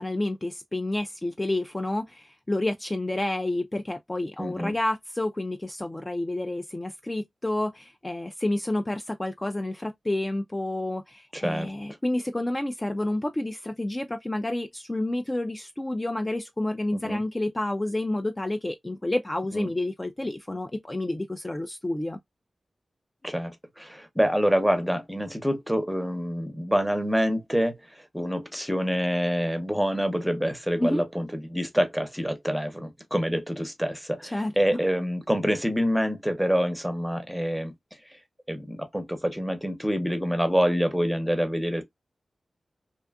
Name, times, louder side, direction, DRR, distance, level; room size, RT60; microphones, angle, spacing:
voice 1, 0.0-22.2 30.8-31.0 34.3-34.8, left 1 dB, 25° left, 0.3 m, -29 dB
voice 2, 4.4-4.7 11.3-11.7 16.9-17.2 19.5-19.7 23.2-23.5 23.8-37.7 38.5-41.8, equal, 5° right, 0.7 m, -26 dB
2.6 x 2.3 x 2.2 m
cardioid pair, 65°, 0 cm